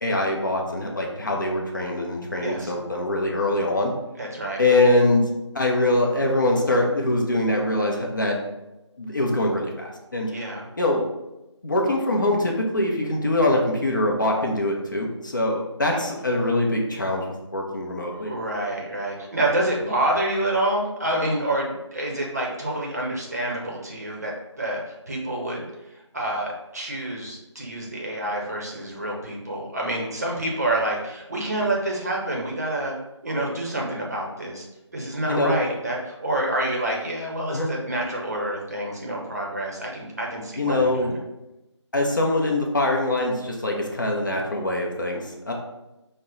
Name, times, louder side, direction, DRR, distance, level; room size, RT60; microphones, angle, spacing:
voice 1, 0.0-3.9 4.6-5.2 5.5-8.4 9.0-10.3 10.8-11.1 11.6-17.3 17.5-18.3 35.3-35.5 37.5-37.7 40.6-41.1 41.9-45.5, left 1 dB, 40° left, 0 dB, 0.6 m, -23 dB
voice 2, 2.4-2.7 4.2-4.6 10.3-10.7 15.9-16.0 18.1-24.3 24.6-25.7 26.1-33.0 33.2-34.6 34.9-41.1, right 1 dB, 35° right, -2 dB, 0.7 m, -27 dB
5.2 x 2.1 x 3.7 m, 0.96 s
figure-of-eight pair, 165°, 16 cm